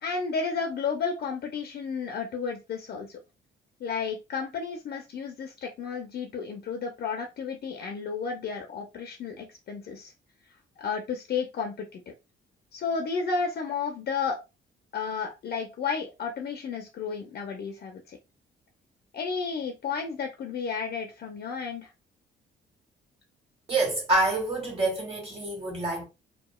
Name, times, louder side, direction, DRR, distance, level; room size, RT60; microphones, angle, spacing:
voice 1, 0.0-3.2 3.8-10.1 10.8-12.1 12.7-14.4 14.9-18.2 19.1-21.9, left 5 dB, 55° left, 0.6 m, -32 dB
voice 2, 23.7-26.0, right 2 dB, 30° right, 1.6 m, -27 dB
2.9 x 2.3 x 2.3 m
cardioid pair, 90°, 20 cm